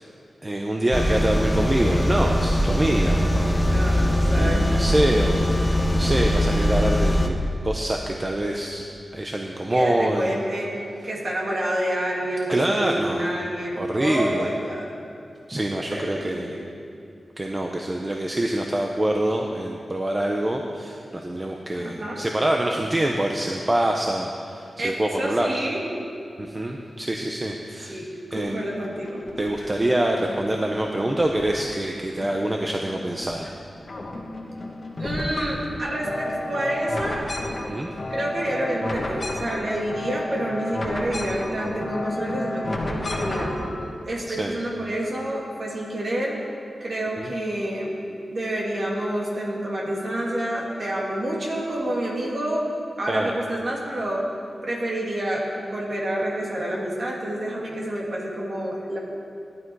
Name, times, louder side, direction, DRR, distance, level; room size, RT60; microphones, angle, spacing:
voice 1, 0.4-3.7 4.3-5.6 5.9-7.3 7.6-8.8 9.1-10.3 12.5-13.3 13.8-14.5 15.5-16.6 17.4-25.5 26.4-28.0 28.3-28.7 29.4-33.5 37.7-37.9 44.3-44.5 47.2-47.3 53.1-53.3, right 1 dB, 20° right, 1 dB, 0.8 m, -25 dB
sound 1, 0.9-7.3, equal, 15° left, 0.9 m, -21 dB
voice 2, 3.6-4.9 9.7-14.9 15.9-16.7 21.7-22.2 24.8-25.9 27.8-29.3 35.0-37.3 38.1-43.5 44.0-46.4 46.8-48.0 48.3-52.7 53.0-54.3 54.6-59.0, right 1 dB, 45° right, -3 dB, 2.9 m, -28 dB
sound 2, 28.4-29.8 30.3-31.9 32.2-33.5 33.8-43.7, left 1 dB, 40° left, 1.7 m, -32 dB
17.5 x 11.5 x 4.8 m, 2.6 s
wide cardioid pair, 125°, 0 cm